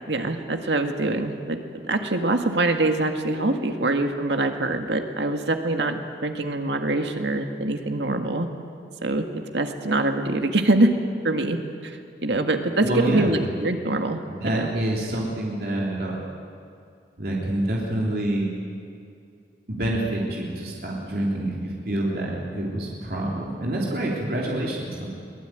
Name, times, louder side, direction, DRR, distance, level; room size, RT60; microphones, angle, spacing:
voice 1, 0.1-8.5 9.0-10.9 11.2-11.6 11.8-14.7, right 2 dB, 80° right, 5 dB, 1.9 m, -24 dB
voice 2, 12.8-13.4 14.3-16.2 17.2-18.5 19.7-25.1, right 1 dB, 55° right, -3 dB, 3.5 m, -27 dB
23.0 x 19.0 x 9.2 m, 2.4 s
head